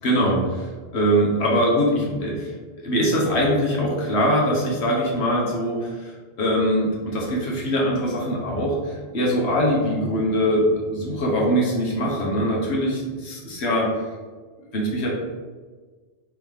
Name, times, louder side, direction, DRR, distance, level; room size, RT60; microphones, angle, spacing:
voice 1, 0.0-2.5 2.8-13.9 14.7-15.1, equal, 80° left, -3 dB, 1.2 m, -22 dB
3.6 x 3.1 x 4.7 m, 1.4 s
omnidirectional pair, 1.1 m